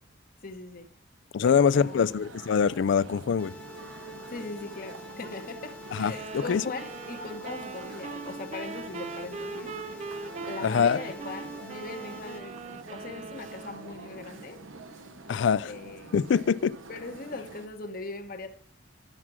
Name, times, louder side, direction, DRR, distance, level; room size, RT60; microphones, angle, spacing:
voice 1, 0.4-0.9 1.4-2.2 4.3-10.1 10.5-14.6 15.3-16.2 16.9-18.5, left 3 dB, 50° left, 1.0 m, -40 dB
voice 2, 1.3-3.5 5.9-6.6 10.6-11.0 15.3-15.7 16.1-16.7, left 6 dB, 65° left, 0.4 m, -24 dB
sound 1, 1.7-17.7, right 3 dB, 85° right, 0.9 m, -46 dB
sound 2, 3.4-12.4, left 2 dB, 5° left, 0.9 m, -47 dB
sound 3, 5.9-13.9, right 4 dB, 35° right, 0.3 m, -41 dB
11.0 x 7.3 x 6.1 m
head